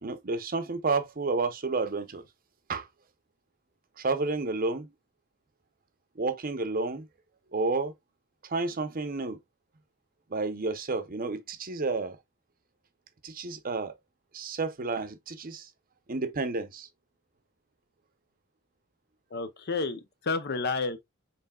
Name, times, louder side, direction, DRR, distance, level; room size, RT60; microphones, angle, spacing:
voice 1, 0.0-2.2 2.7-2.9 4.0-4.9 6.2-7.1 7.5-7.9 8.4-9.4 10.3-12.2 13.2-13.9 14.3-15.7 16.1-16.9, right 3 dB, 40° right, 0.8 m, -30 dB
voice 2, 19.3-21.0, left 4 dB, 50° left, 0.6 m, -30 dB
5.8 x 3.9 x 2.3 m
head